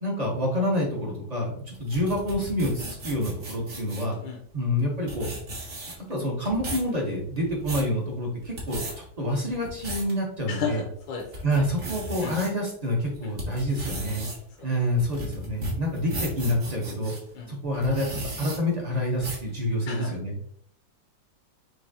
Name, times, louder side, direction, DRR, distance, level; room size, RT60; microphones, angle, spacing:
voice 1, 0.0-4.2 4.5-5.3 6.1-10.8 11.4-14.3 14.6-17.1 17.5-20.3, equal, 25° right, -1 dB, 1.0 m, -27 dB
sound 1, 1.7-4.1 4.8-4.9 5.1-6.1 6.4-6.9 7.4-7.9 8.4-8.9 9.5-10.1 10.6-10.7 11.2-12.5 13.0-17.2 17.7-18.6 19.2-19.5, right 1 dB, 45° right, 1.7 m, -35 dB
voice 2, 10.5-11.2 12.2-12.3 13.2-13.3 17.3-17.5 19.9-20.1, left 7 dB, 75° left, 0 dB, 1.5 m, -32 dB
6.0 x 3.2 x 2.8 m, 0.65 s
omnidirectional pair, 2.1 m